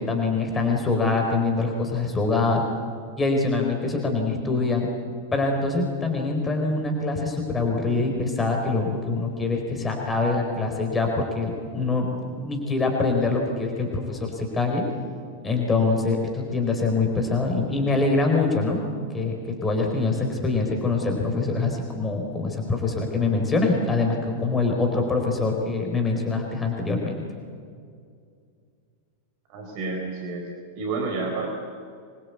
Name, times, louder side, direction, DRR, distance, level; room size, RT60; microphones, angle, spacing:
voice 1, 0.0-2.6 3.2-4.9 5.3-14.8 15.4-18.8 19.1-27.2, left 3 dB, 15° left, 2 dB, 4.3 m, -24 dB
voice 2, 29.5-30.5 30.7-31.5, right 3 dB, 45° right, 2 dB, 4.4 m, -29 dB
25.5 x 23.0 x 8.2 m, 2.3 s
figure-of-eight pair, 90°, 0 cm